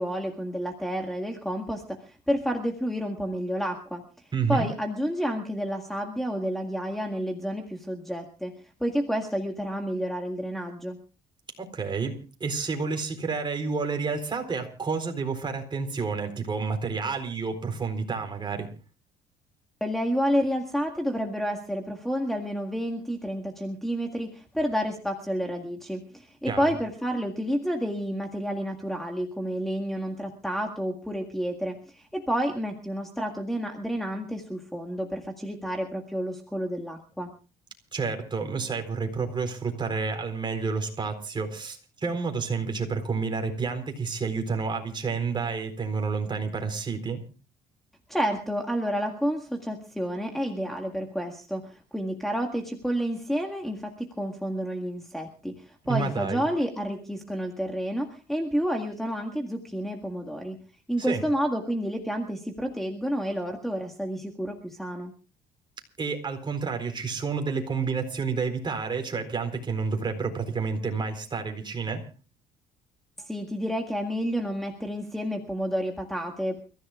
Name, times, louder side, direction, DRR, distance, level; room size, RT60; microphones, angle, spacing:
voice 1, 0.0-4.0 4.5-8.5 8.8-11.0 19.8-37.3 48.1-60.6 60.9-65.1 73.2-76.6, equal, ahead, 3 dB, 1.9 m, -30 dB
voice 2, 4.3-4.7 11.6-18.7 26.5-26.6 37.9-47.2 55.8-56.4 61.0-61.2 66.0-72.1, right 5 dB, 30° right, 4 dB, 4.1 m, -30 dB
29.5 x 15.0 x 2.4 m, 0.35 s
cardioid pair, 110°, 17 cm